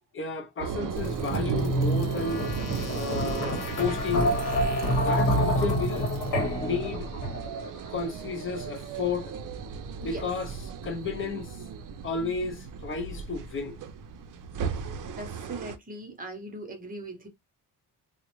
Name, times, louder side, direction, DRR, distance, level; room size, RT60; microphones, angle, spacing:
voice 1, 0.1-2.5 2.9-4.3 4.9-6.1 6.6-7.1 7.9-9.3 10.0-11.6 12.0-13.8, left 5 dB, 30° left, 0.6 m, -32 dB
sound 1, 0.6-15.8, right 7 dB, 50° right, 0.5 m, -36 dB
sound 2, 1.0-7.7, equal, 50° left, 1.1 m, -28 dB
voice 2, 15.0-17.3, right 2 dB, 20° right, 0.8 m, -40 dB
3.7 x 2.1 x 3.0 m
cardioid pair, 170°, 40 cm